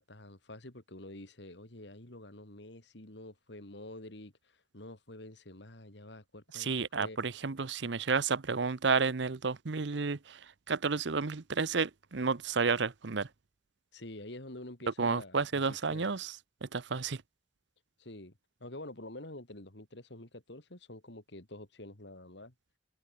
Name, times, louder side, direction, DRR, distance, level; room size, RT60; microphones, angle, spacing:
voice 1, 0.0-7.2 13.9-16.0 18.0-18.3 18.6-22.5, left 1 dB, 65° left, 2.8 m, -48 dB
voice 2, 6.5-13.3 15.0-16.3 16.6-17.2, right 4 dB, 70° right, 0.8 m, -31 dB
head